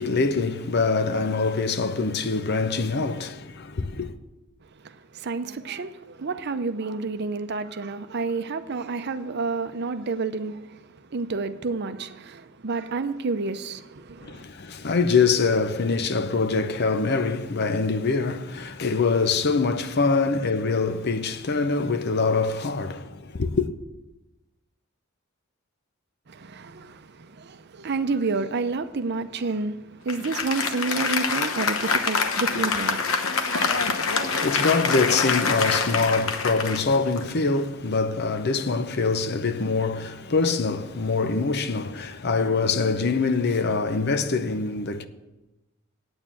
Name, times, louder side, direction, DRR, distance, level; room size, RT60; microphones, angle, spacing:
voice 1, 0.0-4.1 14.2-23.7 33.7-45.1, left 4 dB, 55° left, 0.7 m, -24 dB
voice 2, 4.8-14.4 26.3-33.8, right 3 dB, 55° right, 0.7 m, -30 dB
Applause, 30.1-37.7, left 5 dB, 90° left, 1.0 m, -25 dB
9.0 x 8.8 x 7.4 m
head